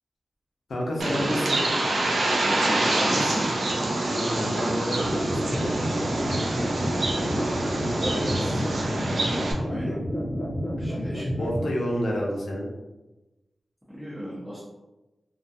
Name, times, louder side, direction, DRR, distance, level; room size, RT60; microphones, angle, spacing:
voice 1, 0.7-1.6 4.0-6.1 11.4-12.7, equal, 90° left, -3 dB, 0.6 m, -30 dB
Bird, 1.0-9.5, right 2 dB, 70° right, 0.4 m, -26 dB
voice 2, 2.4-3.4 7.2-8.6 9.7-9.9 10.8-11.2 13.9-14.6, equal, 10° right, -9 dB, 0.6 m, -35 dB
sound 1, 5.0-11.7, equal, 55° left, 0.8 m, -30 dB
2.4 x 2.3 x 2.6 m, 1.1 s
wide cardioid pair, 125°, 0 cm